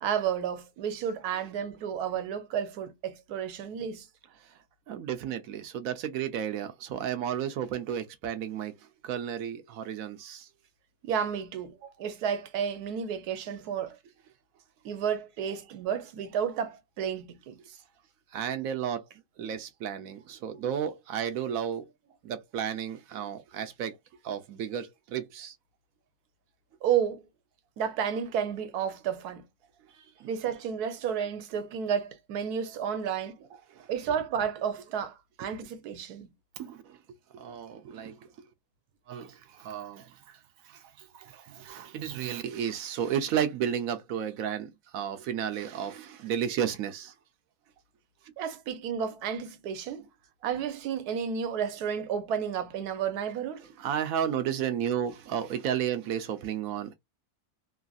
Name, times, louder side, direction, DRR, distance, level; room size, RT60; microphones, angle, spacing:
voice 1, 0.0-4.1 11.0-14.0 14.8-17.8 26.8-27.3 27.8-29.4 30.2-33.4 33.9-36.3 41.5-41.6 48.4-50.1 50.4-53.6, right 8 dB, 90° right, 1.2 m, -32 dB
voice 2, 4.9-8.7 9.0-10.5 18.3-19.1 19.4-21.9 22.2-24.0 24.2-25.5 30.2-30.3 33.8-33.9 36.6-37.0 37.3-38.2 39.1-40.1 40.7-40.8 41.1-47.1 53.8-56.9, right 9 dB, 70° right, 1.0 m, -33 dB
3.1 x 2.5 x 2.3 m
omnidirectional pair, 1.6 m